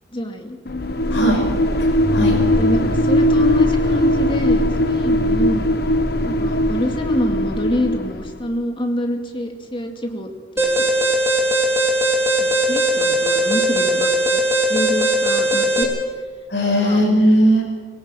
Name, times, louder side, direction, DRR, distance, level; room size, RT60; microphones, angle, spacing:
voice 1, 0.1-0.6 1.1-1.4 2.5-5.7 6.2-10.3 10.6-10.8 11.4-11.5 12.4-14.4 14.7-15.9 16.8-17.0, left 1 dB, 30° left, 4 dB, 2.3 m, -26 dB
sound 1, 0.7-8.5, left 1 dB, 60° left, 1.3 m, -19 dB
voice 2, 1.1-1.4 1.8-2.4 16.5-17.6, equal, 75° left, 1 dB, 5.7 m, -17 dB
sound 2, 1.9-7.4, left 1 dB, 85° right, 3.9 m, -30 dB
Alarm, 10.6-15.8, right 1 dB, 15° right, 3.5 m, -19 dB
19.5 x 17.5 x 7.7 m, 1.5 s
head